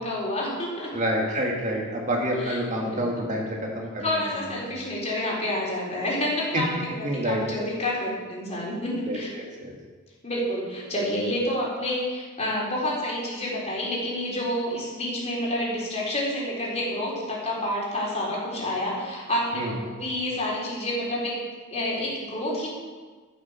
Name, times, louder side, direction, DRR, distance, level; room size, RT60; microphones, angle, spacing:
voice 1, 0.0-0.9 2.4-3.3 4.0-9.3 10.2-21.4 21.7-22.7, left 1 dB, 30° left, -5 dB, 4.3 m, -29 dB
voice 2, 0.9-4.2 7.0-7.4 9.1-9.7 19.5-19.7, equal, 35° right, -1 dB, 2.0 m, -28 dB
13.0 x 8.7 x 6.5 m, 1.4 s
head